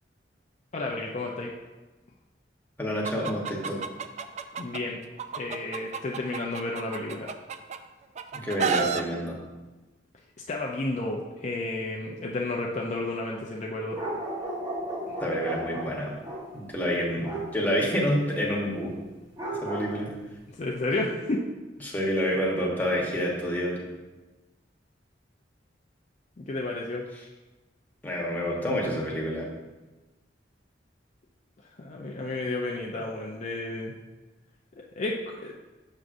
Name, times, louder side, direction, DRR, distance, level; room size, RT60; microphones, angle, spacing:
voice 1, 0.7-1.5 4.6-5.0 5.4-7.3 10.5-14.0 15.1-15.2 20.5-21.4 21.9-22.0 26.4-27.0 31.8-33.9 35.0-35.7, left 2 dB, 40° left, -1 dB, 0.5 m, -32 dB
voice 2, 2.8-3.8 8.3-9.4 15.2-16.1 16.5-18.9 19.5-20.1 21.8-23.8 28.0-29.5, equal, 10° left, -3 dB, 1.1 m, -28 dB
Chicken rooster, 3.0-4.8 5.2-7.8 8.2-9.0, right 6 dB, 40° right, 0.3 m, -30 dB
sound 1, 13.9-16.6 17.2-17.6 19.4-20.0, right 1 dB, 20° right, 0.9 m, -34 dB
6.5 x 6.1 x 2.5 m, 1.2 s
head